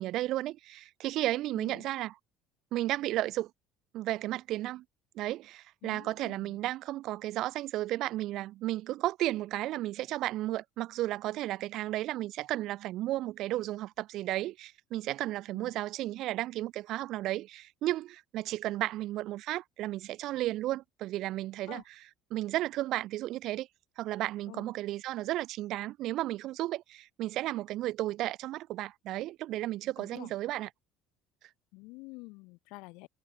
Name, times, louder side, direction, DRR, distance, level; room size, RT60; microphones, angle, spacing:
voice 1, 0.0-2.1 2.7-3.5 3.9-4.8 5.2-21.8 22.3-23.7 24.0-30.7, right 15 dB, 50° right, 0.3 m, -33 dB
voice 2, 1.5-1.9 5.8-6.6 15.5-15.7 21.7-21.8 24.5-24.7 30.0-30.3 31.7-33.1, left 26 dB, 75° left, 2.3 m, -48 dB
cardioid pair, 160°, 0 cm